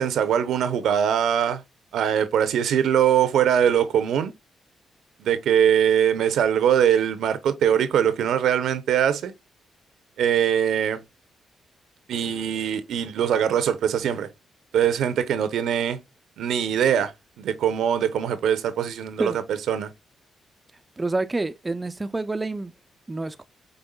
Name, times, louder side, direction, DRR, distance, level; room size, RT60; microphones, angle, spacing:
voice 1, 0.0-1.6 1.9-4.3 5.2-9.3 10.2-11.0 12.1-14.3 14.7-16.0 16.4-17.1 17.4-19.9, right 9 dB, 80° right, 0.7 m, -22 dB
voice 2, 21.0-22.7 23.1-23.4, right 2 dB, 20° right, 0.4 m, -28 dB
5.3 x 3.5 x 2.2 m
cardioid pair, 85°, 0 cm